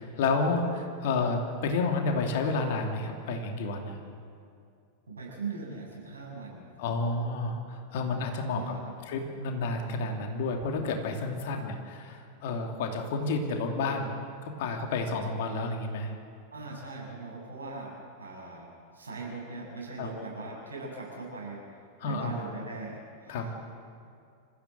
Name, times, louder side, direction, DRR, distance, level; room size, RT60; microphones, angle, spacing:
voice 1, 0.0-4.0 6.8-8.7 9.1-14.1 14.4-16.2 20.0-20.1 22.0-22.3 23.3-23.5, left 3 dB, 55° left, 3 dB, 2.9 m, -30 dB
voice 2, 5.1-6.6 8.5-8.9 16.5-18.7 18.9-21.6 22.0-23.5, right 3 dB, 75° right, -2 dB, 6.7 m, -40 dB
26.0 x 15.5 x 7.7 m, 2.4 s
figure-of-eight pair, 90°, 0 cm